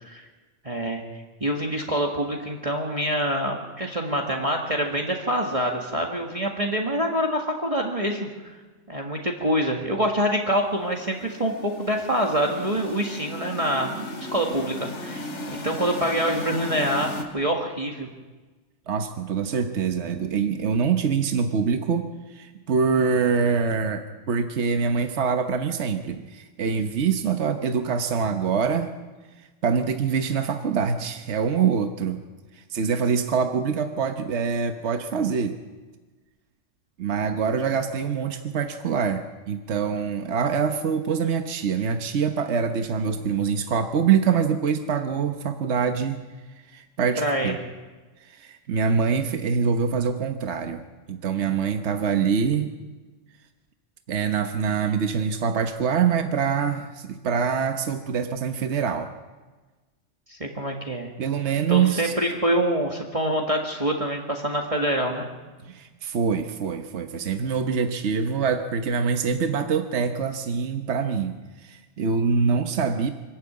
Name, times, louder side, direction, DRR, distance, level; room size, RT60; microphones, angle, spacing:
voice 1, 0.6-1.0 1.4-8.3 8.9-14.0 14.3-18.1 47.2-47.6 60.3-61.1 61.7-65.3, equal, 30° right, 0 dB, 1.8 m, -26 dB
sound 1, 10.8-17.2, left 1 dB, 75° left, 2.3 m, -36 dB
voice 2, 18.9-28.9 29.6-32.2 32.5-35.5 37.0-46.2 46.7-47.6 48.2-50.8 51.1-52.7 54.1-59.1 61.2-62.1 65.6-73.1, right 6 dB, 70° right, 6 dB, 1.3 m, -25 dB
25.0 x 12.5 x 8.6 m, 1.3 s
omnidirectional pair, 1.2 m